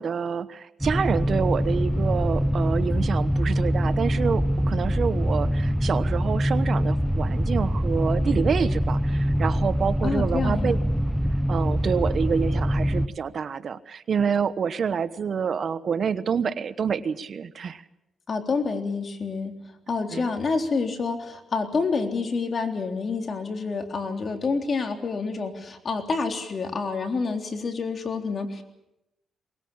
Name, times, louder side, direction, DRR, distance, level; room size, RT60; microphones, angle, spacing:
voice 1, 0.0-10.8 11.5-17.8 20.1-20.3, right 6 dB, 60° right, 15 dB, 1.1 m, -27 dB
sound 1, 0.8-13.1, equal, ahead, 0.8 m, -24 dB
voice 2, 10.0-10.8 18.3-19.5 19.9-28.6, left 4 dB, 50° left, 5 dB, 3.6 m, -28 dB
22.5 x 20.0 x 8.7 m, 0.88 s
cardioid pair, 75°, 0 cm